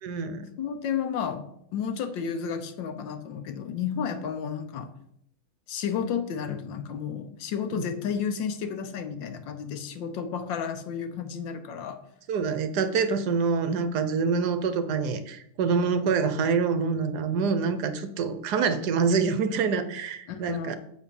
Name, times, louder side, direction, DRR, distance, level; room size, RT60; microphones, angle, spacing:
voice 1, 0.0-0.5 7.7-7.8 12.3-20.8, right 5 dB, 65° right, 10 dB, 1.1 m, -26 dB
voice 2, 0.6-1.4 1.7-4.9 5.7-12.0 20.3-20.8, left 7 dB, 70° left, 9 dB, 1.5 m, -32 dB
7.8 x 4.2 x 6.9 m, 0.72 s
omnidirectional pair, 2.3 m